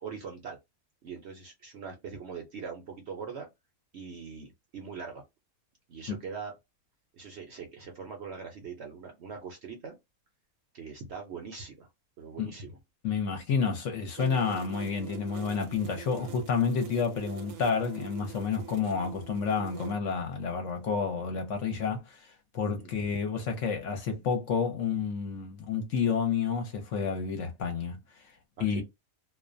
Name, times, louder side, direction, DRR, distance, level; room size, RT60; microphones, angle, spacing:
voice 1, 0.0-0.6 1.0-3.5 3.9-5.2 5.9-6.5 7.1-9.9 10.7-11.9 12.2-12.8 16.2-16.3 22.8-22.9 28.6-28.8, right 5 dB, 60° right, 0.7 m, -42 dB
voice 2, 13.0-28.0 28.6-28.8, left 5 dB, 65° left, 0.9 m, -30 dB
sound 1, 14.2-19.9, right 11 dB, 80° right, 1.1 m, -45 dB
2.4 x 2.1 x 2.5 m
omnidirectional pair, 1.5 m